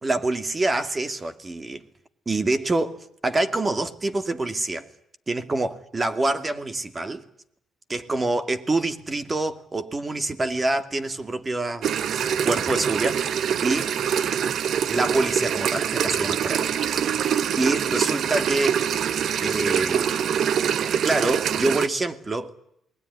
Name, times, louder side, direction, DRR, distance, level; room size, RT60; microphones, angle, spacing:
voice 1, 0.0-1.8 2.3-4.9 5.3-7.2 7.9-13.9 14.9-17.3 17.6-18.8 19.4-20.6 21.0-22.5, right 2 dB, 25° right, 2.4 m, -26 dB
sound 1, 11.8-21.9, right 8 dB, 65° right, 1.1 m, -24 dB
28.0 x 21.0 x 9.6 m
cardioid pair, 90°, 0 cm